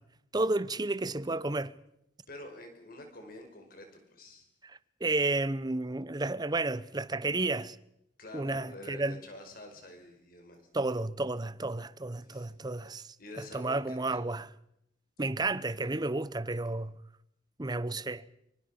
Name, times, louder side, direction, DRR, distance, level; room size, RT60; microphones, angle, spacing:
voice 1, 0.3-1.7 5.0-7.8 8.3-9.2 10.7-13.1 13.5-14.5 15.2-17.0 17.6-18.2, right 2 dB, 25° right, 0.8 m, -31 dB
voice 2, 2.3-4.5 8.2-10.8 12.2-12.5 12.8-14.2, left 1 dB, 55° left, 5.1 m, -48 dB
24.5 x 24.0 x 5.7 m
head